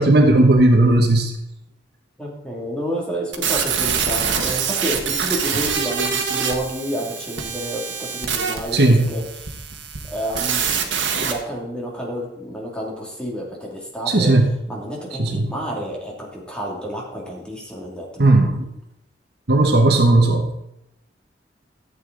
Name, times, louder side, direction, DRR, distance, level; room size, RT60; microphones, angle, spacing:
voice 1, 0.0-1.3 8.7-9.0 14.1-14.5 15.2-15.5 18.2-18.7 19.5-20.6, right 2 dB, 60° right, 4 dB, 1.2 m, -15 dB
voice 2, 2.2-9.6 10.1-14.3 14.7-18.3, equal, 5° left, -3 dB, 2.5 m, -30 dB
sound 1, 3.3-11.3, right 6 dB, 80° right, 1.4 m, -25 dB
13.5 x 8.2 x 3.9 m, 0.81 s
head